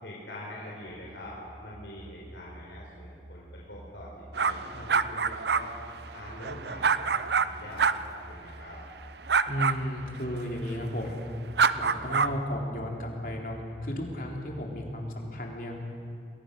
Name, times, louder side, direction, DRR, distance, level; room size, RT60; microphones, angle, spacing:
voice 1, 0.0-5.7 6.1-8.8, left 1 dB, 85° left, -4 dB, 4.7 m, -44 dB
sound 1, 0.8-14.9, right 1 dB, 5° right, 7.7 m, -49 dB
sound 2, 4.3-7.5 7.8-7.9 9.3-9.7 11.6-12.3, right 5 dB, 70° right, 0.7 m, -25 dB
voice 2, 9.5-11.2 11.7-15.8, left 1 dB, 50° left, 0 dB, 3.7 m, -34 dB
29.0 x 21.5 x 6.7 m, 2.3 s
head